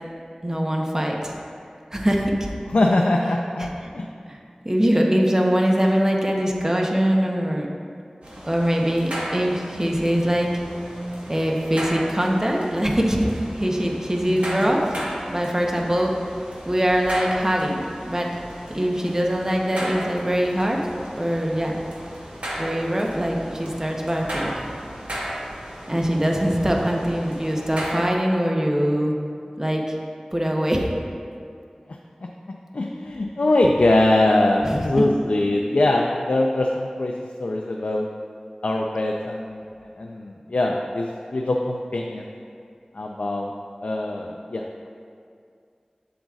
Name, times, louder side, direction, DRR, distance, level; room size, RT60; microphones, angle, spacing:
voice 1, 0.4-1.3 1.9-2.3 3.6-3.9 4.3-4.4 4.6-7.7 8.5-10.5 11.3-14.9 15.2-16.1 16.7-18.3 18.7-20.8 21.1-21.8 22.6-24.5 25.9-29.1 29.6-29.9 30.3-30.9 34.6-34.9, equal, 25° right, 0 dB, 0.8 m, -22 dB
voice 2, 2.7-3.7 3.9-4.1 32.7-37.1 37.4-38.1 38.6-39.6 40.0-42.3 43.0-43.5 43.8-44.9, left 2 dB, 80° left, 0 dB, 0.4 m, -22 dB
sound 1, 8.2-28.0, equal, 70° right, 1.3 m, -35 dB
7.8 x 7.5 x 2.4 m, 2.3 s
wide cardioid pair, 50°, 2 cm